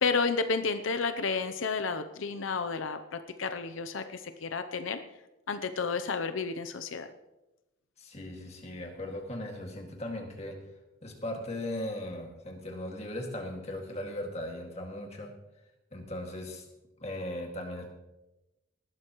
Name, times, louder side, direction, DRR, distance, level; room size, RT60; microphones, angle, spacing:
voice 1, 0.0-5.0 5.5-7.1, left 4 dB, 85° left, 9 dB, 0.7 m, -31 dB
voice 2, 8.0-10.6 11.0-15.3 15.9-16.6 17.0-17.9, left 1 dB, 35° left, 2 dB, 2.1 m, -38 dB
19.0 x 12.0 x 3.1 m, 1.0 s
head